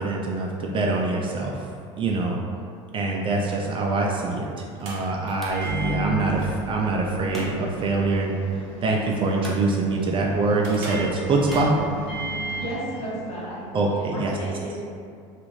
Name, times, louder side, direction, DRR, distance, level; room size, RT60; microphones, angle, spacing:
voice 1, 0.0-1.7 2.0-2.4 2.9-8.3 8.8-11.7 13.7-14.3, right 3 dB, 35° right, -1 dB, 0.3 m, -24 dB
sound 1, 4.4-11.9, right 2 dB, 70° right, 0.8 m, -45 dB
sound 2, 5.3-12.7, equal, ahead, 0.7 m, -43 dB
Microwave oven, 5.5-13.6, right 2 dB, 70° left, 1.1 m, -34 dB
voice 2, 12.6-14.7, right 1 dB, 40° left, -8 dB, 1.3 m, -34 dB
2.5 x 2.4 x 3.0 m, 2.4 s
hypercardioid pair, 90°, 16 cm